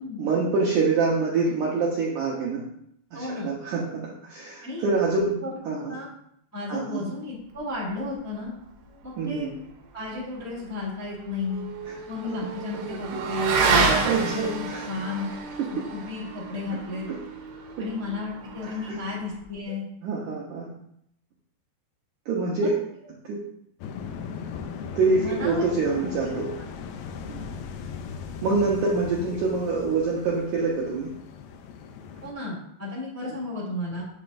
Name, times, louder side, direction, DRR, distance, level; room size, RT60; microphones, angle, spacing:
voice 1, 0.2-2.6 3.1-5.4 5.7-6.0 6.7-7.1 9.2-9.5 11.9-12.0 12.4-12.5 13.4-13.6 14.1-14.8 15.6-15.8 16.7-16.8 17.1-17.2 18.6-19.0 20.0-20.7 22.3-22.8 23.2-23.4 25.0-26.5 27.3-27.5 28.4-31.1, right 4 dB, 70° right, -4 dB, 2.0 m, -26 dB
voice 2, 3.1-3.5 4.6-4.8 5.4-6.1 6.5-8.5 9.0-9.5 9.9-11.6 12.1-15.3 15.9-17.1 17.8-19.8 22.6-22.7 25.2-25.6 32.2-34.0, left 3 dB, 5° left, -7 dB, 1.4 m, -33 dB
Motorcycle / Accelerating revving vroom, 10.7-19.4, right 4 dB, 85° right, 3.4 m, -29 dB
sound 1, 23.8-32.3, left 6 dB, 80° left, 2.3 m, -38 dB
8.6 x 7.4 x 2.6 m, 0.73 s
omnidirectional pair, 4.8 m